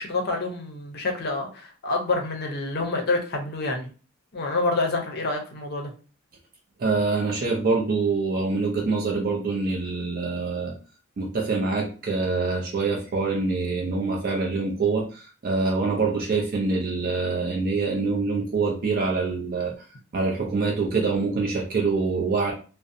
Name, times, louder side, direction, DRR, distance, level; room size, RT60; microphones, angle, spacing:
voice 1, 0.0-3.9 4.3-5.9, left 3 dB, 45° left, 2 dB, 0.5 m, -27 dB
voice 2, 6.8-10.7 11.2-19.7 20.1-22.5, right 4 dB, 45° right, -1 dB, 0.4 m, -25 dB
2.6 x 2.0 x 2.5 m, 0.37 s
head